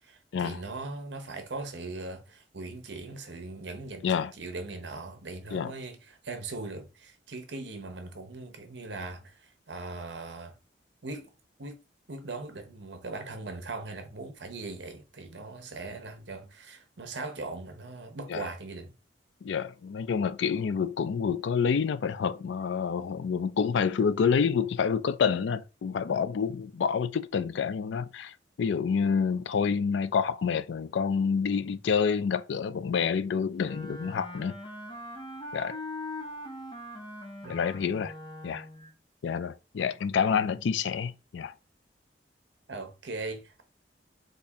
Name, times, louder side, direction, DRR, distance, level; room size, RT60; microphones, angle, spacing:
voice 1, 0.0-10.5 11.0-11.3 11.6-11.8 12.1-18.9 37.4-37.6 42.7-43.6, right 3 dB, 70° right, 0.9 m, -40 dB
voice 2, 19.4-34.5 35.5-35.8 37.5-38.1 38.4-38.7 39.2-41.5, left 6 dB, 80° left, 0.4 m, -28 dB
Wind instrument woodwind instrument, 33.6-38.9, left 1 dB, 25° left, 0.8 m, -41 dB
4.2 x 2.8 x 3.4 m
head